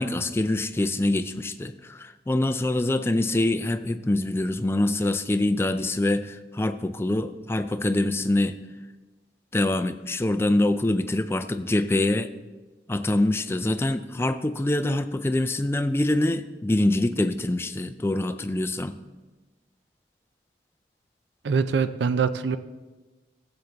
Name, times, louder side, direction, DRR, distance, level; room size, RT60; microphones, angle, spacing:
voice 1, 0.0-8.6 9.5-12.3 12.9-19.0, left 1 dB, 15° left, 10 dB, 0.3 m, -25 dB
voice 2, 21.4-22.6, right 5 dB, 75° right, 12 dB, 0.4 m, -23 dB
14.5 x 7.9 x 3.5 m, 1.2 s
head